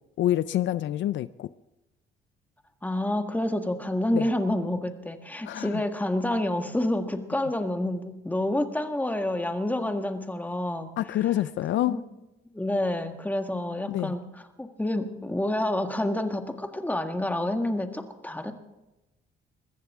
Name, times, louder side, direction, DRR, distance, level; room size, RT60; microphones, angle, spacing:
voice 1, 0.2-1.5 4.1-4.2 5.4-5.8 11.0-12.0 13.9-14.1, left 13 dB, 70° left, 0.5 m, -27 dB
voice 2, 2.8-10.9 11.9-12.0 12.5-18.5, left 1 dB, 10° left, 1.6 m, -28 dB
22.0 x 15.0 x 3.6 m
cardioid pair, 90°, 20 cm